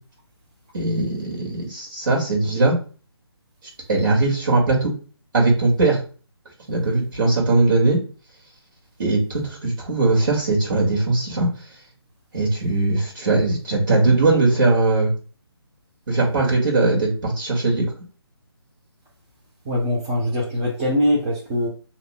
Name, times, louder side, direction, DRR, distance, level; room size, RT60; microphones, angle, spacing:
voice 1, 0.7-2.8 3.9-4.9 5.3-6.0 6.7-8.0 9.0-11.5 12.3-15.1 16.1-17.9, right 3 dB, 50° right, -1 dB, 2.0 m, -20 dB
voice 2, 19.6-21.7, left 1 dB, 20° right, -4 dB, 0.9 m, -22 dB
6.5 x 3.0 x 2.2 m, 0.37 s
figure-of-eight pair, 155°, 14 cm